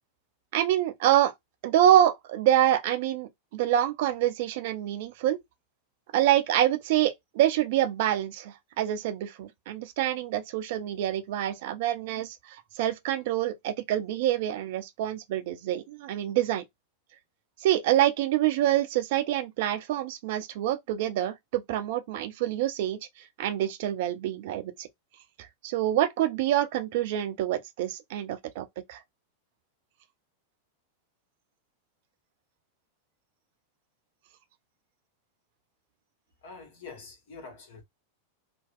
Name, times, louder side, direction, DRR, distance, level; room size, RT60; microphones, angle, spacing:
voice 1, 0.5-1.3 1.6-5.4 6.1-16.6 17.6-23.0 23.4-24.9 25.6-29.0, right 12 dB, 50° right, 0.5 m, -26 dB
voice 2, 36.4-37.8, left 4 dB, 55° left, 1.4 m, -45 dB
2.8 x 2.2 x 3.6 m
figure-of-eight pair, 90°, 0 cm